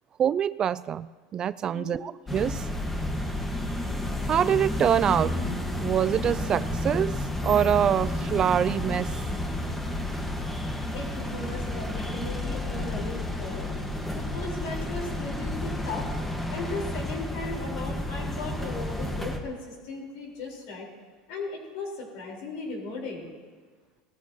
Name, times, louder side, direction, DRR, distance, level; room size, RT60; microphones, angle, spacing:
voice 1, 0.2-2.7 4.3-5.4 5.8-9.2, right 9 dB, 35° right, 18 dB, 0.3 m, -25 dB
sound 1, 2.3-19.4, left 1 dB, 10° left, 1.6 m, -31 dB
voice 2, 10.4-13.7 14.1-16.1 16.5-20.9 21.3-23.3, left 3 dB, 70° left, -1 dB, 4.5 m, -37 dB
19.0 x 14.0 x 3.0 m, 1.5 s
supercardioid pair, 115°, 2 cm